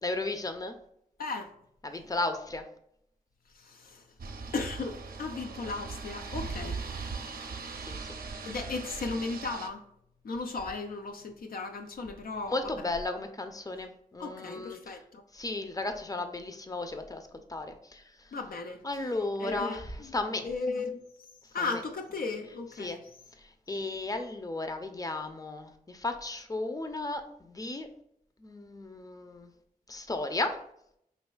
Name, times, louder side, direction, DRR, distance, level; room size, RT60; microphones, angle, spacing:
voice 1, 0.0-0.8 1.8-2.6 7.9-8.1 8.3-8.5 12.5-15.0 15.3-18.0 18.8-20.5 21.7-21.8 22.8-23.0 23.4-27.9 28.4-29.5 29.9-30.6, left 2 dB, 25° left, 0.6 m, -35 dB
voice 2, 1.2-1.5 3.5-4.0 4.5-6.8 8.4-9.8 10.2-12.7 14.2-15.2 18.3-18.8 19.4-20.2 20.4-21.0 21.5-23.0, left 3 dB, 75° left, 0.5 m, -36 dB
sound 1, 4.2-9.7, right 4 dB, 80° right, 0.5 m, -39 dB
5.2 x 3.1 x 2.3 m
cardioid pair, 45°, 15 cm